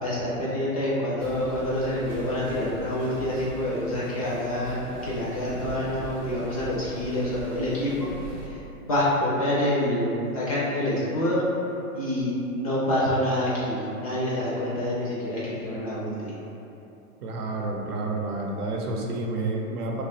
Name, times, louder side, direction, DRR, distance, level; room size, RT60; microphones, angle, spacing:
voice 1, 0.0-8.1 8.4-8.6 8.9-11.4 11.9-16.3, left 1 dB, 25° left, -7 dB, 0.4 m, -27 dB
sound 1, 1.2-8.5, right 1 dB, 25° right, 0.7 m, -40 dB
voice 2, 17.2-20.0, right 2 dB, 75° right, -1 dB, 0.8 m, -29 dB
2.9 x 2.3 x 4.2 m, 2.9 s
hypercardioid pair, 125°, 46 cm